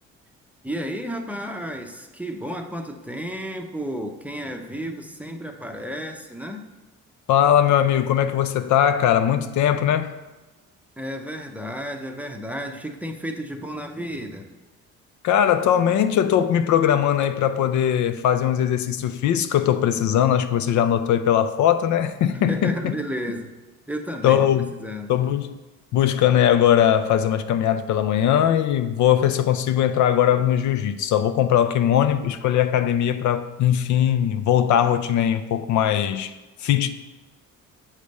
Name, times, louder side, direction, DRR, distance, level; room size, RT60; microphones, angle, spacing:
voice 1, 0.6-6.7 11.0-14.5 22.5-23.6 23.9-24.4 24.8-25.1, equal, 5° right, 0.6 m, -32 dB
voice 2, 7.3-10.2 15.2-22.9 24.2-24.7 25.1-25.5 25.9-36.3 36.6-36.9, left 10 dB, 70° left, 0.5 m, -20 dB
7.2 x 3.3 x 5.2 m
cardioid pair, 90°, 30 cm